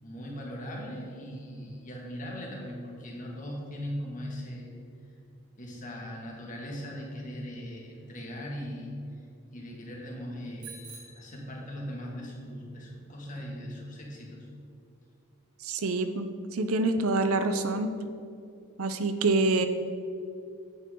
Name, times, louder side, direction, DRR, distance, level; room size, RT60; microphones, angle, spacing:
voice 1, 0.0-4.7 5.6-8.9 9.5-14.5, equal, 35° left, -2 dB, 1.8 m, -39 dB
Bicycle bell, 10.6-12.2, right 5 dB, 55° right, 2.4 m, -49 dB
voice 2, 15.6-17.9 18.8-19.7, right 2 dB, 75° right, 8 dB, 0.6 m, -26 dB
9.7 x 8.4 x 3.8 m, 2.5 s
head